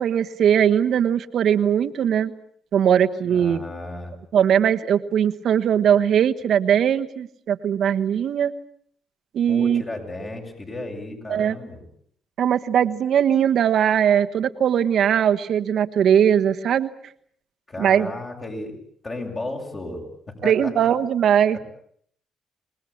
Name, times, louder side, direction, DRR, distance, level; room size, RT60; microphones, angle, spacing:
voice 1, 0.0-2.3 2.7-3.6 4.3-8.5 9.3-9.8 11.3-11.6 12.4-16.9 17.8-18.1 20.4-21.6, right 9 dB, 65° right, 8 dB, 1.3 m, -20 dB
voice 2, 3.2-4.1 9.5-11.8 17.7-18.8 19.0-20.0 20.4-20.7 21.5-21.6, left 2 dB, 30° left, 1 dB, 7.6 m, -33 dB
27.5 x 19.5 x 8.6 m, 0.64 s
cardioid pair, 90°, 0 cm